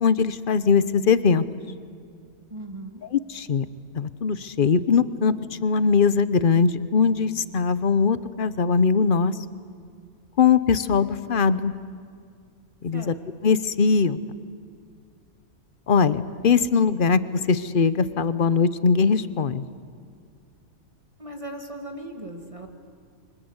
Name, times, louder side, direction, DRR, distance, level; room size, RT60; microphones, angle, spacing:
voice 1, 0.0-1.4 3.1-3.7 3.9-9.4 10.4-11.7 12.8-13.2 13.4-14.2 15.9-19.6, left 5 dB, 45° left, 15 dB, 0.9 m, -21 dB
voice 2, 2.5-3.0 12.9-13.2 21.2-22.7, right 1 dB, 20° right, 3 dB, 2.0 m, -38 dB
29.0 x 24.5 x 8.0 m, 2.2 s
omnidirectional pair, 1.5 m